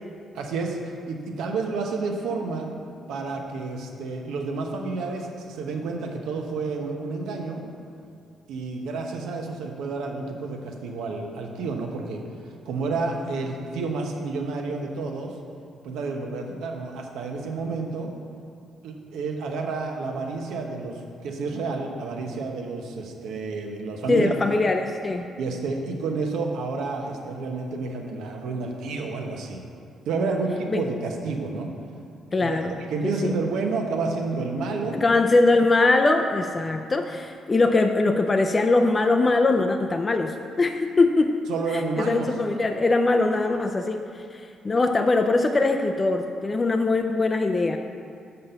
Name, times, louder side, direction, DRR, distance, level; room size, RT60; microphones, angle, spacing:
voice 1, 0.3-0.8 1.1-2.7 3.1-7.6 8.5-12.2 12.7-15.3 15.8-18.1 18.8-24.3 25.4-29.6 30.1-31.7 32.4-35.0 41.5-42.3, right 3 dB, 85° right, 2 dB, 1.0 m, -30 dB
voice 2, 24.1-25.3 30.2-30.3 30.7-30.8 32.3-32.8 33.0-33.4 35.0-41.3 41.7-47.8, left 3 dB, 30° left, 5 dB, 0.4 m, -22 dB
5.9 x 5.5 x 6.7 m, 2.3 s
cardioid pair, 90°, 0 cm